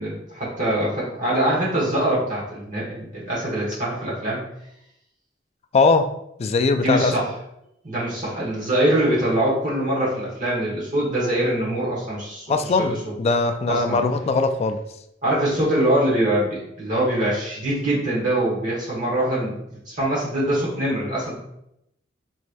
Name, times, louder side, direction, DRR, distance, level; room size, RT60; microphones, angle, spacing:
voice 1, 0.0-4.4 6.8-7.2 7.8-12.5 12.8-13.1 13.7-13.9 15.2-21.3, right 1 dB, 45° right, -7 dB, 1.3 m, -23 dB
voice 2, 5.7-6.1 6.4-7.1 12.5-14.8, left 3 dB, 35° left, 7 dB, 0.3 m, -20 dB
4.7 x 3.1 x 2.6 m, 0.80 s
head